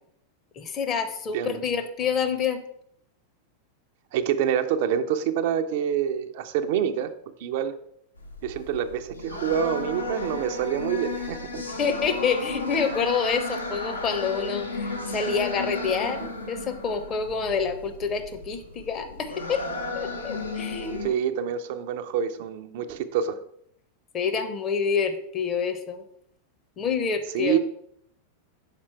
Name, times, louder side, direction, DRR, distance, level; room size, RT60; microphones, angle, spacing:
voice 1, 0.6-2.6 11.8-19.6 19.9-21.0 24.1-26.0 26.8-27.6, left 6 dB, 30° left, 0.7 m, -27 dB
voice 2, 4.1-7.1 7.4-7.8 8.4-11.6 21.0-23.4 27.3-27.6, right 9 dB, 50° right, 0.4 m, -26 dB
sound 1, 8.2-21.1, left 2 dB, 80° left, 0.8 m, -34 dB
5.9 x 4.3 x 4.4 m
figure-of-eight pair, 90°, 0 cm